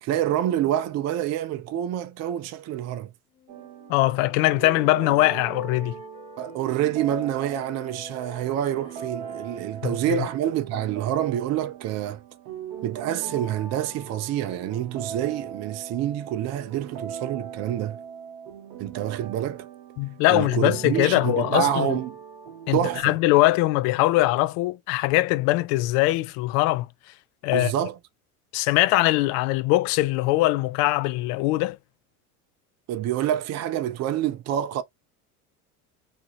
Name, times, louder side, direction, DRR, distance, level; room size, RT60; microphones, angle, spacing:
voice 1, 0.0-3.1 6.4-12.2 12.8-18.0 18.8-19.7 20.3-22.2 22.7-23.2 27.5-28.0 32.9-34.8, right 11 dB, 35° right, 0.5 m, -27 dB
Wind instrument woodwind instrument, 3.3-6.8 7.2-11.2, left 2 dB, 10° left, 1.1 m, -51 dB
sound 1, 3.5-23.0, right 8 dB, 60° right, 0.9 m, -39 dB
voice 2, 3.9-6.0 10.1-10.2 20.0-22.0 22.7-26.9 27.4-27.7 28.5-31.8, left 18 dB, 50° left, 0.5 m, -22 dB
2.8 x 2.5 x 2.7 m
hypercardioid pair, 80°, 45 cm